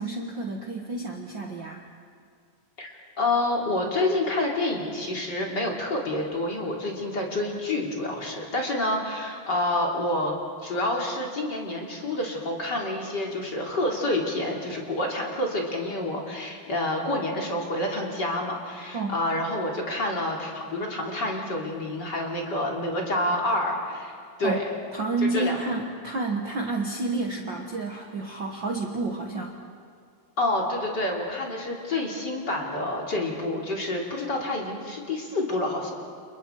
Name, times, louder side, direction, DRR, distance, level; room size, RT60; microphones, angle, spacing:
voice 1, 0.0-1.8 18.9-19.2 24.4-24.6 24.9-29.5, right 3 dB, 80° right, 1 dB, 1.0 m, -30 dB
voice 2, 2.8-10.3 10.6-24.6 25.3-25.5 30.4-35.9, left 1 dB, 30° left, -1 dB, 3.1 m, -28 dB
29.5 x 29.5 x 4.6 m, 2.2 s
omnidirectional pair, 4.5 m